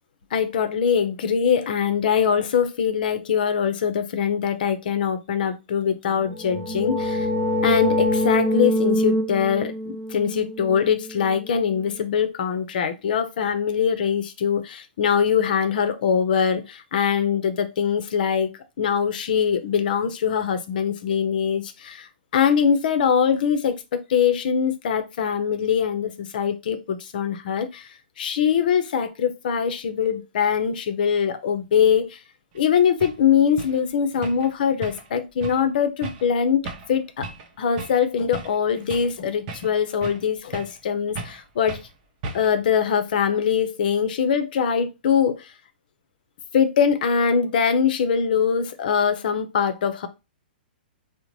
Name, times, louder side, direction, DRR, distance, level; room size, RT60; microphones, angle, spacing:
voice 1, 0.3-7.3 7.6-18.5 18.8-27.9 28.2-32.2 32.5-37.3 37.6-41.8 42.3-45.5 46.5-50.1, left 7 dB, 60° left, 0.6 m, -22 dB
sound 1, 6.2-11.8, left 1 dB, 5° left, 0.6 m, -25 dB
sound 2, 32.6-32.7 33.0-33.2 33.6-33.8 34.2-34.5 34.8-35.1 35.4-35.6 36.0-36.3 36.7-36.9 37.2-37.5 37.8-38.0 38.3-39.2 39.5-40.3 40.5-40.8 41.2-41.4 41.7-41.9 42.2-42.6, right 3 dB, 45° right, 0.7 m, -36 dB
3.8 x 2.1 x 3.0 m
hypercardioid pair, 115°, 5 cm